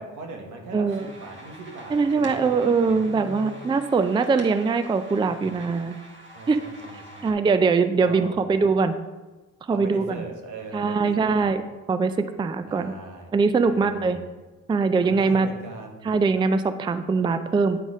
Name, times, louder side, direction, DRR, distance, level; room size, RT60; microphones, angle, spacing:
voice 1, 0.0-3.7 5.0-5.6 6.3-7.4 8.0-8.5 9.7-11.5 12.6-13.3 13.6-14.3 15.0-16.1, right 3 dB, 80° right, 2 dB, 1.4 m, -40 dB
voice 2, 0.7-1.0 1.9-6.0 6.5-6.6 7.2-9.0 9.7-10.2 10.7-11.6 11.9-12.9 13.3-14.2 14.7-15.5 16.0-17.8, right 4 dB, 15° right, 11 dB, 0.3 m, -22 dB
sound 1, 0.9-7.3, equal, 40° right, 1.6 m, -45 dB
9.3 x 4.0 x 4.9 m, 1.2 s
cardioid pair, 90°, 30 cm